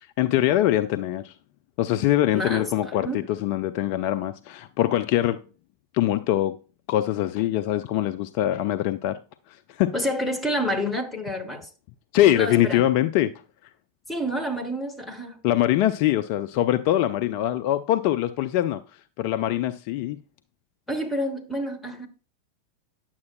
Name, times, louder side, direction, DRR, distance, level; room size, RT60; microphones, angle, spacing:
voice 1, 0.2-1.3 1.8-5.4 5.9-6.6 6.9-9.2 9.5-9.9 12.1-13.3 15.4-18.8 19.2-20.2, left 13 dB, 45° left, 0.3 m, -23 dB
voice 2, 2.3-2.7 3.0-3.2 9.9-11.7 12.3-12.8 14.1-15.4 20.9-22.1, equal, 10° left, 1.3 m, -28 dB
9.4 x 7.2 x 2.3 m
figure-of-eight pair, 90°, 0 cm